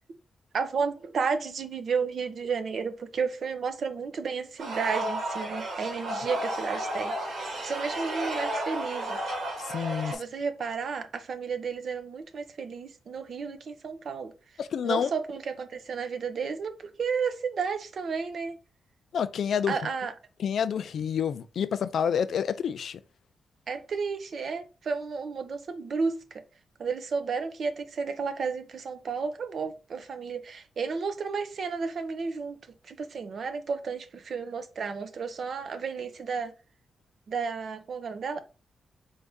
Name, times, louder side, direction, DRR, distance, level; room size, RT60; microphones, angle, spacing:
voice 1, 0.5-9.2 10.1-14.3 14.8-18.6 19.7-20.1 23.7-26.4 26.8-32.6 32.8-36.5 37.3-38.4, right 5 dB, 50° right, 0.6 m, -32 dB
sound 1, 4.6-10.1, right 1 dB, 70° right, 1.8 m, -32 dB
voice 2, 9.6-10.2 14.6-15.1 19.1-19.8 20.4-23.0, left 7 dB, 65° left, 0.3 m, -28 dB
4.6 x 2.7 x 3.5 m
wide cardioid pair, 160°, 0 cm